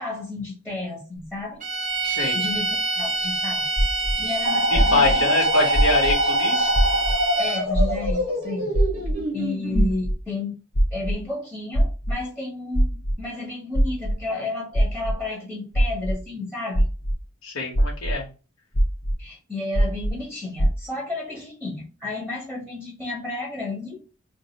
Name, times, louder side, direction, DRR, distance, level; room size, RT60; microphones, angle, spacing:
voice 1, 0.0-1.6 2.3-3.7 4.2-5.3 7.4-8.8 9.3-10.5 10.9-16.9 19.2-24.0, left 2 dB, ahead, -5 dB, 1.2 m, -32 dB
sound 1, 1.6-7.8, right 3 dB, 35° right, 0.6 m, -27 dB
voice 2, 2.0-2.4 4.7-6.7 17.4-18.3, left 3 dB, 70° left, -3 dB, 1.0 m, -24 dB
sound 2, 3.8-4.1 4.7-5.1 5.7-6.1 6.7-7.1 7.7-8.1 8.7-9.1 9.7-10.1 10.7-11.1 11.7-12.1 12.7-13.1 13.7-14.1 14.7-15.1 15.7-16.1 16.7-17.1 17.7-18.1 18.7-19.1 19.7-20.1 20.6-20.7, equal, 30° left, 0.6 m, -19 dB
sound 3, 4.4-9.9, equal, 85° right, 1.3 m, -25 dB
2.7 x 2.5 x 3.9 m, 0.33 s
head